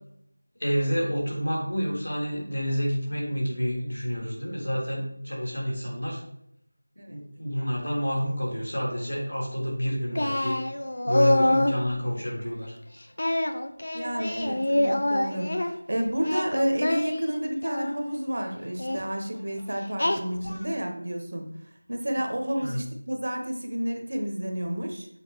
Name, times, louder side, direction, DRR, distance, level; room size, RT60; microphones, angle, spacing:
voice 1, 0.6-6.2 7.1-10.6 11.0-12.8 22.6-22.8, equal, 70° left, -2 dB, 3.3 m, -29 dB
Singing, 10.2-11.8 13.2-15.7 16.2-18.0 18.8-19.0 20.0-20.6, left 1 dB, 40° left, 0.6 m, -26 dB
voice 2, 13.9-21.5 21.9-25.1, equal, 40° right, 4 dB, 1.0 m, -30 dB
6.9 x 5.0 x 4.7 m, 0.74 s
figure-of-eight pair, 180°, 0 cm